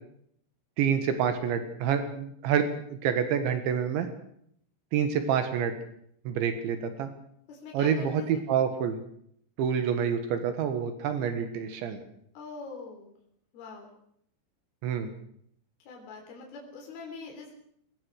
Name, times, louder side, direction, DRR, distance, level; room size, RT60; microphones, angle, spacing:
voice 1, 0.8-2.7 3.0-4.1 4.9-5.7 6.3-7.1 7.7-9.0 9.6-12.0 14.8-15.1, right 8 dB, 75° right, 9 dB, 3.8 m, -27 dB
voice 2, 7.5-8.3 12.4-13.1 13.5-13.9 15.9-17.5, left 4 dB, 55° left, 0 dB, 5.3 m, -43 dB
22.5 x 19.5 x 6.4 m, 0.68 s
omnidirectional pair, 5.4 m